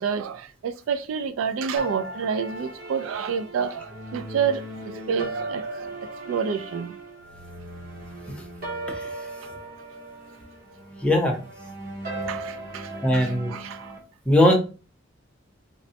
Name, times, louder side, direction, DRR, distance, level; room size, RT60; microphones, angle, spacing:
voice 1, 0.0-6.0 6.3-6.9 12.3-13.9, right 6 dB, 80° right, 0.3 m, -29 dB
sound 1, 1.8-14.0, right 2 dB, 50° right, 1.0 m, -37 dB
voice 2, 8.9-9.2 11.0-11.4 13.0-13.6 14.3-14.5, left 1 dB, 5° left, 0.7 m, -20 dB
4.1 x 2.1 x 2.7 m
head